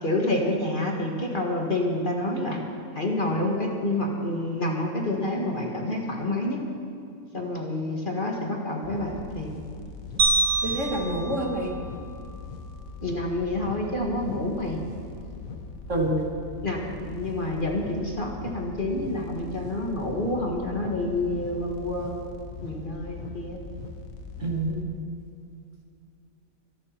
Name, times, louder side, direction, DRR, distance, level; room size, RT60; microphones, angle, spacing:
voice 1, 0.0-2.6 2.9-6.6 7.3-9.6 13.0-14.8 16.6-22.3 22.6-23.6, left 1 dB, 35° left, 0 dB, 1.8 m, -28 dB
sound 1, 8.8-24.8, left 4 dB, 65° left, 1.5 m, -40 dB
sound 2, 10.2-12.6, right 3 dB, 80° right, 2.4 m, -27 dB
voice 2, 10.6-11.7 15.9-16.2 24.4-25.0, right 1 dB, 55° right, 0 dB, 2.5 m, -27 dB
24.5 x 11.0 x 4.5 m, 2.6 s
omnidirectional pair, 1.5 m